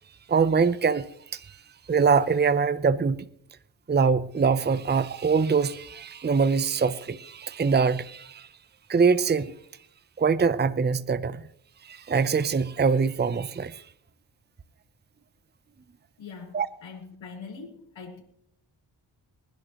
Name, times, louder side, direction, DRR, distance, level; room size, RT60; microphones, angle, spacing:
voice 1, 0.3-1.6 1.9-3.3 3.9-8.5 8.9-9.6 10.2-11.4 11.8-13.8 16.5-16.7, right 5 dB, 20° right, 0.7 m, -23 dB
voice 2, 16.2-18.2, left 5 dB, 70° left, 5.1 m, -42 dB
23.0 x 11.0 x 3.1 m
cardioid pair, 50°, 47 cm